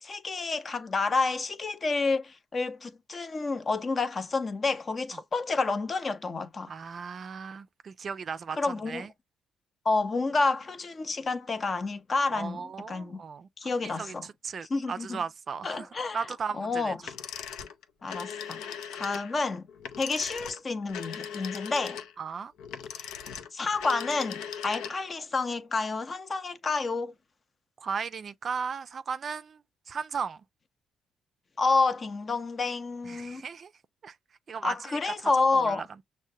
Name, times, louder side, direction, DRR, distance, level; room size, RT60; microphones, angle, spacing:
voice 1, 0.0-6.7 8.5-9.1 9.8-13.2 13.6-14.3 14.7-15.2 15.6-16.3 16.5-17.1 18.0-18.6 18.9-19.7 20.0-22.0 23.0-23.1 23.5-27.1 31.6-33.4 34.6-35.8, left 3 dB, 35° left, 0.6 m, -29 dB
voice 2, 6.7-9.1 12.3-13.5 13.8-16.9 22.2-22.5 27.8-30.4 33.0-33.7 34.0-34.2 34.5-35.9, right 6 dB, 45° right, 0.4 m, -36 dB
sound 1, 17.0-25.2, left 8 dB, 90° left, 0.6 m, -39 dB
6.2 x 2.1 x 2.7 m
cardioid pair, 90°, 0 cm